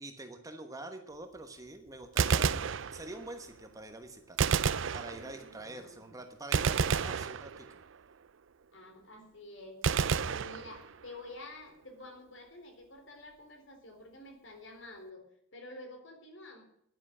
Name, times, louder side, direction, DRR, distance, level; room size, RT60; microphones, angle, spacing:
voice 1, 0.0-4.4 4.9-7.8, right 2 dB, 15° right, 6 dB, 1.1 m, -45 dB
Gunshot gunfire, 2.0-3.4 4.4-5.6 6.5-8.0 9.8-11.2, right 6 dB, 60° right, 0.5 m, -30 dB
voice 2, 5.2-6.2 8.7-9.8 10.2-15.3 15.5-16.6, left 2 dB, 60° left, 4 dB, 4.1 m, -49 dB
10.5 x 10.5 x 9.8 m, 0.75 s
head